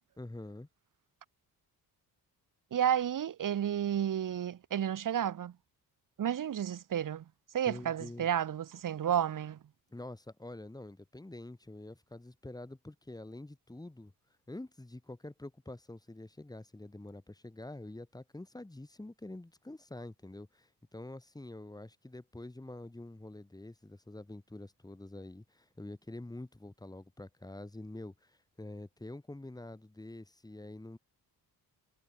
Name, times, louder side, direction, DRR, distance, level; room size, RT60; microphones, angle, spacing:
voice 1, 0.2-0.7 7.7-8.3 9.9-14.1 14.5-31.0, left 2 dB, 10° left, 5.5 m, -46 dB
voice 2, 2.7-5.5 6.2-7.2 7.5-9.6, right 9 dB, 55° right, 1.6 m, -31 dB
cardioid pair, 135°, 38 cm